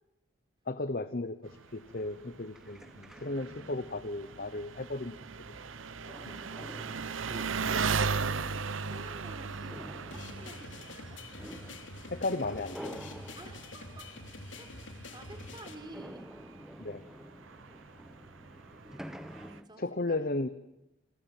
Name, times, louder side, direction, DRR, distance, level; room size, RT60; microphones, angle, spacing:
voice 1, 0.7-5.1 12.1-13.0 16.8-17.0 19.8-20.5, left 2 dB, 50° left, 12 dB, 1.0 m, -35 dB
sound 1, 1.5-19.7, equal, ahead, 1.0 m, -50 dB
Engine, 1.5-19.6, right 5 dB, 90° right, 1.0 m, -38 dB
voice 2, 6.1-6.7 7.3-11.2 13.3-14.1 14.6-16.3 19.6-20.3, right 1 dB, 25° right, 6 dB, 4.1 m, -50 dB
sound 2, 10.1-15.7, left 2 dB, 75° left, 3.4 m, -46 dB
28.0 x 22.0 x 9.3 m, 0.90 s
head